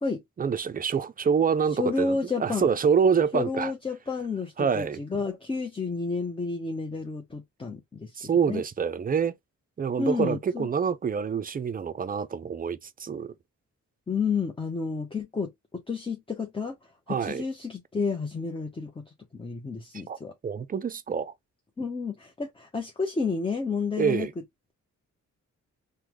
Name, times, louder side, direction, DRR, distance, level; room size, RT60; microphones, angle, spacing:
voice 1, 0.4-3.7 4.6-5.0 8.2-9.3 9.8-13.3 17.1-17.4 20.1-20.2 20.4-21.3 24.0-24.3, right 6 dB, 30° right, 0.4 m, -26 dB
voice 2, 1.8-2.7 3.3-8.2 8.4-8.6 10.0-10.7 14.1-20.3 21.8-24.3, left 4 dB, 15° left, 0.6 m, -31 dB
3.4 x 2.2 x 2.9 m
cardioid pair, 90°, 31 cm